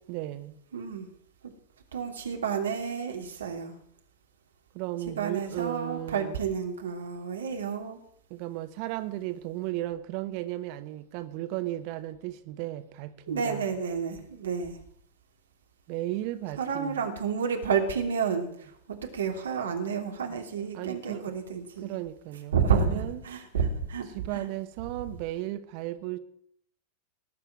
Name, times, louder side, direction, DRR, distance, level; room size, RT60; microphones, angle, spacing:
voice 1, 0.1-0.6 4.7-6.3 8.3-13.7 15.9-17.1 20.3-21.3 21.8-23.2 24.1-26.2, right 15 dB, 45° right, 1.0 m, -35 dB
voice 2, 0.7-1.1 1.9-3.8 5.2-8.0 13.3-14.8 16.6-21.9 22.5-24.1 24.3-24.5, right 6 dB, 65° right, 3.0 m, -30 dB
19.5 x 6.7 x 8.9 m
figure-of-eight pair, 90°, 0 cm